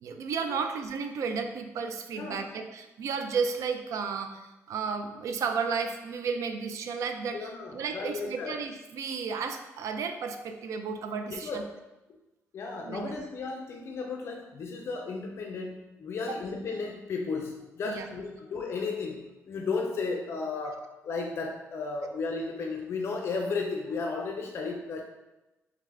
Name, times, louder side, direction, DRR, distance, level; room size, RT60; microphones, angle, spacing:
voice 1, 0.0-11.6 12.9-13.2 16.3-16.4 17.9-18.2, right 5 dB, 75° right, 6 dB, 0.4 m, -33 dB
voice 2, 2.2-2.5 7.3-8.6 11.3-11.7 12.5-25.0, left 4 dB, 55° left, 1 dB, 0.4 m, -34 dB
3.7 x 3.3 x 3.2 m, 1.0 s
cardioid pair, 145°, 5 cm